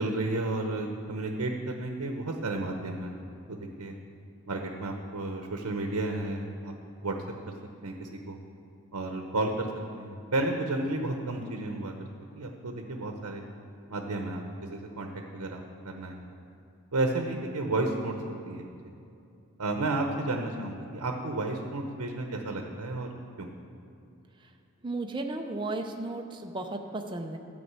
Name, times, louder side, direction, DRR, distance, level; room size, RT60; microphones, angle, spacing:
voice 1, 0.0-3.1 3.5-3.9 4.5-6.7 7.0-7.1 7.5-7.6 7.8-8.4 8.9-9.7 9.9-12.1 12.3-13.4 13.9-16.2 16.9-18.1 18.5-18.9 19.6-23.1 23.4-23.5, right 2 dB, 85° right, 3 dB, 0.8 m, -32 dB
voice 2, 24.8-27.4, right 2 dB, 20° right, 4 dB, 0.6 m, -34 dB
11.0 x 5.2 x 8.1 m, 2.6 s
head